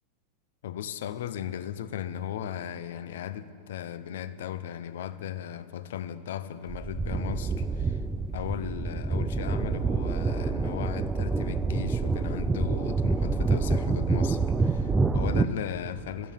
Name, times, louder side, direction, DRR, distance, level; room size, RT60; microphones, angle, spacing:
voice 1, 0.6-8.0 8.3-16.3, left 10 dB, 80° left, 0.5 m, -36 dB
sound 1, 6.7-15.5, right 4 dB, 15° right, 0.4 m, -27 dB
11.5 x 11.0 x 7.2 m
hypercardioid pair, 115°, 0 cm